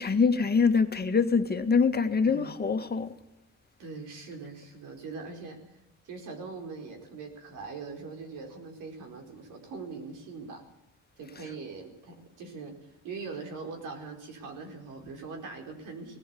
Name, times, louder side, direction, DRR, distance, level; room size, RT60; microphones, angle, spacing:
voice 1, 0.0-3.1, left 5 dB, 30° left, 8 dB, 1.7 m, -24 dB
voice 2, 2.2-2.5 3.8-5.6 6.0-10.6 11.2-16.2, right 4 dB, 90° right, 3 dB, 4.8 m, -42 dB
19.0 x 16.0 x 8.5 m, 0.84 s
cardioid pair, 90°, 30 cm